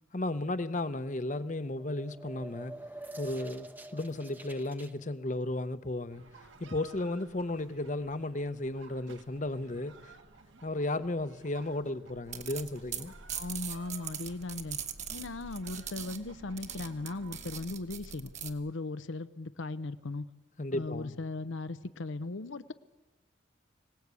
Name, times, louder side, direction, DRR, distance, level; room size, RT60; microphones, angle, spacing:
voice 1, 0.1-2.7 3.2-6.2 6.6-10.1 10.6-13.1 20.6-21.2, left 2 dB, 40° left, 0.8 m, -34 dB
sound 1, 1.7-4.9, right 2 dB, 10° right, 0.8 m, -46 dB
sound 2, 6.1-17.7, right 3 dB, 75° right, 1.7 m, -55 dB
sound 3, 12.3-18.5, right 8 dB, 35° right, 1.3 m, -41 dB
voice 2, 13.3-14.8 15.1-20.2 20.7-22.7, left 2 dB, 75° left, 0.7 m, -38 dB
25.0 x 18.0 x 8.3 m
head